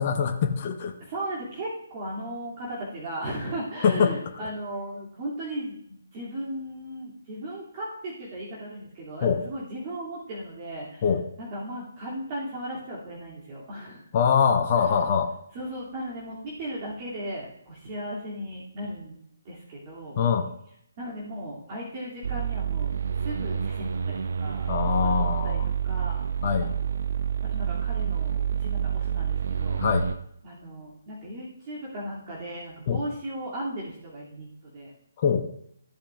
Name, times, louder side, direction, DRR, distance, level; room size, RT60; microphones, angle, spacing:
voice 1, 0.0-0.9 3.8-4.1 9.2-9.4 11.0-11.2 14.1-15.3 20.2-20.5 24.7-25.7 26.4-26.7 29.8-30.1 32.9-33.0 35.2-35.4, left 7 dB, 35° left, 5 dB, 0.9 m, -23 dB
voice 2, 1.0-5.8 6.1-11.1 11.4-14.1 14.7-15.0 15.5-20.2 21.0-25.6 25.8-26.3 27.4-29.8 30.4-34.9, right 1 dB, 30° right, -7 dB, 2.6 m, -36 dB
sound 1, 22.2-30.1, right 8 dB, 55° right, 0.7 m, -28 dB
14.5 x 8.5 x 2.5 m, 0.71 s
figure-of-eight pair, 140°, 0 cm